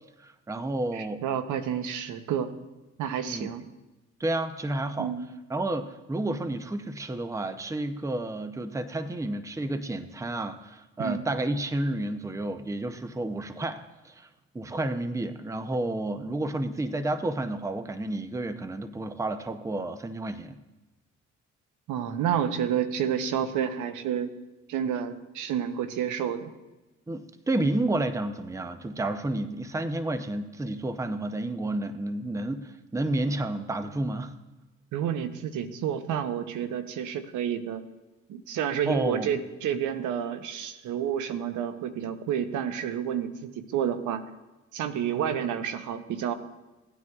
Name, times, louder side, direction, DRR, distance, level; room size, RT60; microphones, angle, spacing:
voice 1, 0.2-1.2 3.3-3.5 4.2-5.1 5.5-14.3 14.5-20.6 27.1-34.3 38.9-39.3, right 2 dB, 10° right, 10 dB, 0.6 m, -31 dB
voice 2, 0.9-2.5 3.0-3.6 5.0-5.3 11.0-11.3 21.9-24.3 24.7-26.5 27.6-27.7 34.9-37.8 38.3-44.2 44.7-46.3, right 9 dB, 85° right, 10 dB, 0.8 m, -30 dB
17.0 x 9.4 x 2.4 m, 1.1 s
cardioid pair, 90°, 30 cm